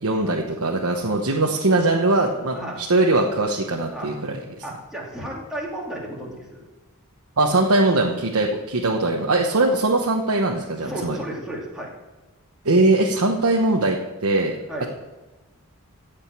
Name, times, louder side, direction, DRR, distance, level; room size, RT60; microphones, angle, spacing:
voice 1, 0.0-4.4 7.4-11.2 12.6-14.6, right 2 dB, 75° right, 0 dB, 1.1 m, -21 dB
voice 2, 4.6-6.6 10.8-11.9 14.7-14.9, right 1 dB, ahead, -4 dB, 2.7 m, -33 dB
15.0 x 5.2 x 8.8 m, 1.2 s
head